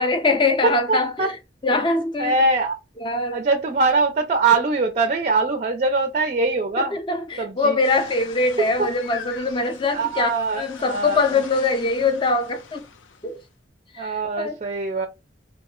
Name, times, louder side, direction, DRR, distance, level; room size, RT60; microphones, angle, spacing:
voice 1, 0.0-1.4 1.6-2.3 3.0-3.4 6.8-12.8 13.2-13.4 13.9-14.6, left 3 dB, 25° left, 0.4 m, -23 dB
voice 2, 0.6-1.3 2.2-2.8 3.3-7.0 7.4-7.8 9.9-11.2 14.0-15.1, right 3 dB, 35° right, 0.4 m, -22 dB
sound 1, 7.8-13.5, left 6 dB, 90° left, 0.5 m, -42 dB
2.4 x 2.0 x 3.6 m
head